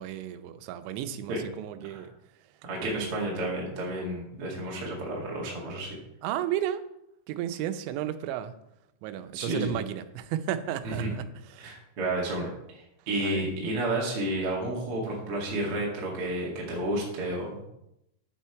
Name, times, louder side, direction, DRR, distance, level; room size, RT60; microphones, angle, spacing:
voice 1, 0.0-2.1 2.8-3.2 6.2-6.8 7.3-8.5 9.0-11.7 13.2-13.4, right 11 dB, 90° right, 10 dB, 3.0 m, -33 dB
voice 2, 2.6-6.0 9.3-9.7 10.8-11.1 11.6-17.6, right 1 dB, 40° right, -3 dB, 2.1 m, -31 dB
9.4 x 7.4 x 4.7 m, 0.82 s
omnidirectional pair, 5.2 m